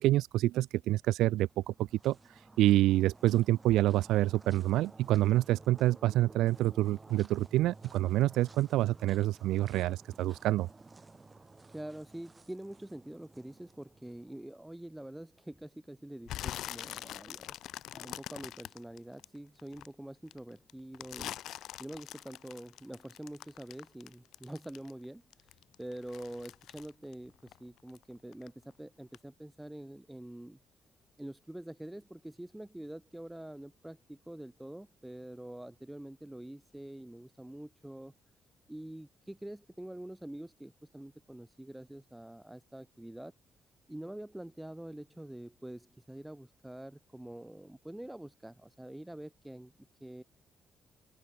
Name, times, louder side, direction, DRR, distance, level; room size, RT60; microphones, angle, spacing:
voice 1, 0.0-2.2 2.6-10.7, right 15 dB, 90° right, 0.3 m, -27 dB
sound 1, 1.3-14.6, right 3 dB, 25° right, 5.7 m, -54 dB
voice 2, 11.7-17.6 17.9-21.4 21.8-25.2 25.8-30.6 31.2-38.1 38.7-43.3 43.9-50.2, right 1 dB, 5° right, 3.8 m, -46 dB
sound 2, 16.3-19.9 20.3-25.0 25.3-28.0 28.3-28.7 29.1-29.2, left 13 dB, 80° left, 1.5 m, -43 dB
open air
cardioid pair, 90°, 0 cm